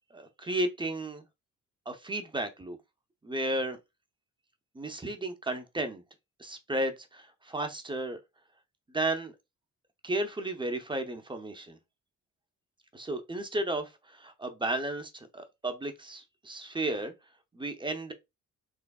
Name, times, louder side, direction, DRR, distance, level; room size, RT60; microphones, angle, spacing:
voice 1, 0.1-1.2 1.9-2.8 3.2-3.8 4.7-6.0 6.4-8.2 8.9-9.3 10.0-11.8 12.9-17.1 17.5-18.1, right 1 dB, 15° right, 0.6 m, -33 dB
3.6 x 3.2 x 2.2 m
cardioid pair, 90°, 30 cm